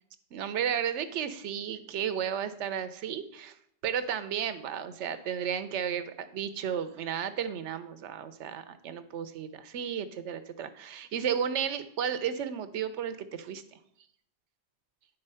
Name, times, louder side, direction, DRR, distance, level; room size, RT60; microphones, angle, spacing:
voice 1, 0.3-3.6 3.8-13.6, right 8 dB, 85° right, 12 dB, 1.0 m, -33 dB
9.9 x 4.0 x 5.5 m, 0.72 s
omnidirectional pair, 1.2 m